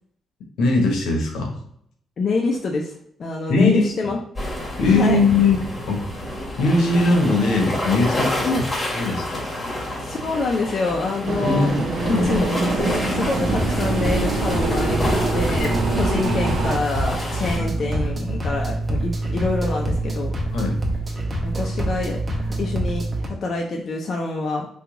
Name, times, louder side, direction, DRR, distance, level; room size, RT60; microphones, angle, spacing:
voice 1, 0.6-1.6 3.5-4.1 4.8-6.1 6.6-8.5 8.9-9.4 11.4-12.3 16.1-16.9 17.6-17.7 20.5-20.8, left 3 dB, 80° left, 2 dB, 0.8 m, -21 dB
voice 2, 2.2-2.9 3.2-4.2 4.8-5.2 8.4-8.7 10.0-11.7 12.1-12.4 13.0-20.3 21.4-24.7, left 3 dB, 55° left, 0 dB, 0.5 m, -26 dB
sound 1, 4.4-17.6, left 1 dB, 25° left, 1.4 m, -29 dB
sound 2, 11.2-16.8, right 3 dB, 70° right, 0.7 m, -24 dB
sound 3, 13.3-23.3, right 1 dB, 30° right, 0.8 m, -26 dB
2.9 x 2.3 x 3.5 m, 0.70 s
cardioid pair, 75°, 0 cm